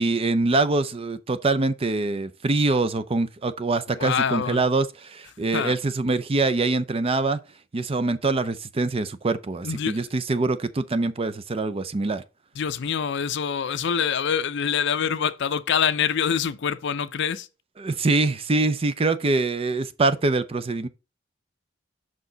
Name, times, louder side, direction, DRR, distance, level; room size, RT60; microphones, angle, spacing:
voice 1, 0.0-7.4 7.7-12.2 17.8-20.9, right 3 dB, 30° right, 0.5 m, -24 dB
voice 2, 3.9-4.6 5.5-5.7 9.6-10.1 12.6-17.5, left 7 dB, 65° left, 0.5 m, -25 dB
6.2 x 4.5 x 3.9 m
head